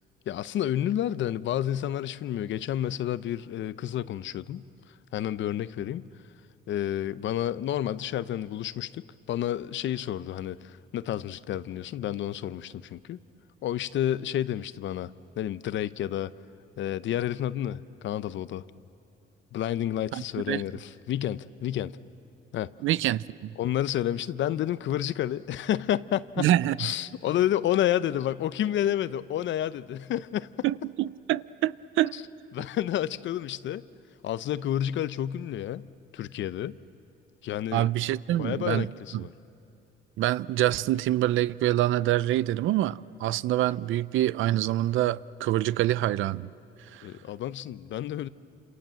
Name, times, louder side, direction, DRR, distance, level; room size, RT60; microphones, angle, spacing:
voice 1, 0.3-4.6 4.9-6.0 6.7-13.2 13.6-16.3 16.8-18.6 19.5-22.0 22.5-22.7 23.6-26.5 26.8-30.7 32.1-32.2 32.5-33.8 34.2-35.8 36.1-36.8 37.4-37.9 38.4-39.3 47.0-48.3, left 11 dB, 70° left, 0.7 m, -30 dB
voice 2, 20.1-20.6 22.8-23.5 26.4-26.8 30.6-32.1 37.7-38.9 39.1-39.2 40.2-46.5 46.9-47.1, right 14 dB, 80° right, 0.5 m, -26 dB
28.5 x 27.5 x 7.7 m
cardioid pair, 90°, 20 cm